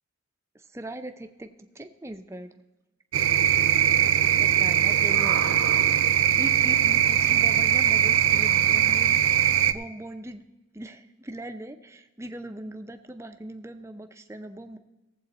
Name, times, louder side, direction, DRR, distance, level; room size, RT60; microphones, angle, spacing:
voice 1, 0.5-2.6 4.4-5.9 6.3-9.2 9.7-10.4 10.7-14.8, right 1 dB, 10° right, 8 dB, 0.5 m, -40 dB
sound 1, 3.1-9.7, right 10 dB, 70° right, 0.5 m, -21 dB
17.5 x 7.7 x 4.2 m, 1.1 s
head